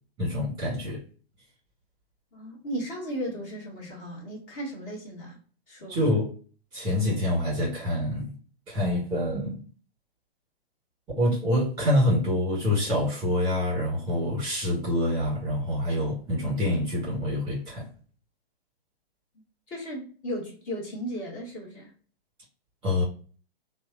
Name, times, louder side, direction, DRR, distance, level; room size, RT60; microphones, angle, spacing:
voice 1, 0.2-1.0 5.9-6.3 6.7-8.3 8.7-9.6 11.2-17.9 22.8-23.0, left 1 dB, 15° right, 1.3 m, -26 dB
voice 2, 2.3-5.4 5.7-6.0 19.7-21.9, equal, 25° left, 1.2 m, -35 dB
2.6 x 2.3 x 2.3 m
figure-of-eight pair, 120°, 31 cm